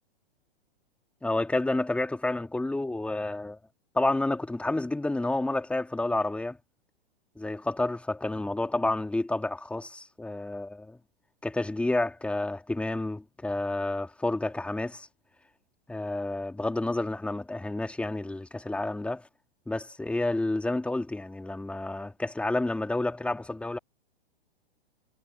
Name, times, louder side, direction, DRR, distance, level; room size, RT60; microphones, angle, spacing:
voice 1, 1.2-3.6 3.9-6.6 7.4-11.0 11.4-15.1 15.9-19.3 19.7-23.8, left 2 dB, 5° left, 2.3 m, -30 dB
figure-of-eight pair, 115°, 30 cm